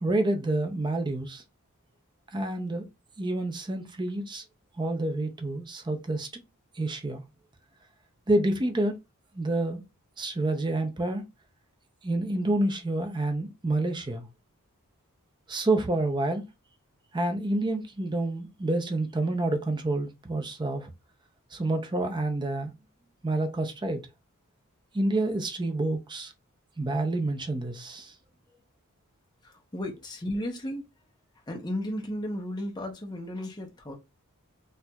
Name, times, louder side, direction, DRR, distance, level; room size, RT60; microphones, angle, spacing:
voice 1, 0.0-1.4 2.3-2.9 3.2-4.4 4.8-6.4 6.8-7.2 8.3-8.9 9.3-9.8 10.2-11.2 12.0-14.2 15.5-16.4 17.1-20.9 21.5-22.7 23.2-24.0 24.9-26.3 26.8-28.1, right 2 dB, 20° right, 0.5 m, -28 dB
voice 2, 29.4-30.9 31.5-33.9, left 1 dB, 20° left, 0.7 m, -34 dB
4.2 x 2.5 x 2.3 m
head